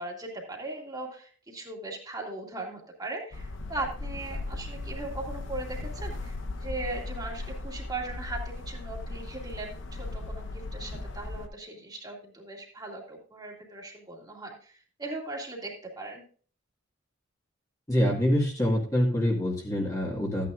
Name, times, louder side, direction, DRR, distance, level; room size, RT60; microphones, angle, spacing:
voice 1, 0.0-14.7 15.0-16.2, right 2 dB, 20° right, -1 dB, 2.2 m, -38 dB
sound 1, 3.3-11.5, left 2 dB, 65° left, 0.9 m, -37 dB
voice 2, 17.9-20.5, equal, 15° left, -2 dB, 1.8 m, -25 dB
13.5 x 9.3 x 2.4 m, 0.42 s
head